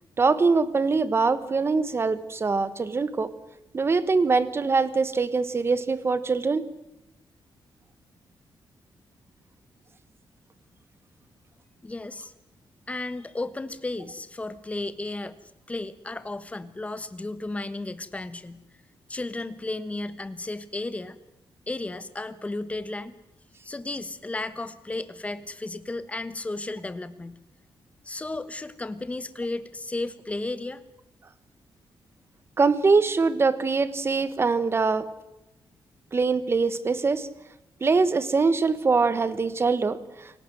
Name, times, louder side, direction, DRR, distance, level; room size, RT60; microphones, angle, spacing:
voice 1, 0.2-3.3 3.7-6.6 32.6-35.1 36.1-37.3 37.8-40.0, right 4 dB, 30° right, 15 dB, 1.3 m, -23 dB
voice 2, 11.8-12.3 12.9-15.4 15.7-18.6 19.1-21.2 21.7-23.2 23.6-27.4 28.0-30.8, left 2 dB, 15° left, 13 dB, 1.2 m, -34 dB
28.0 x 18.0 x 7.9 m, 0.94 s
wide cardioid pair, 150°, 9 cm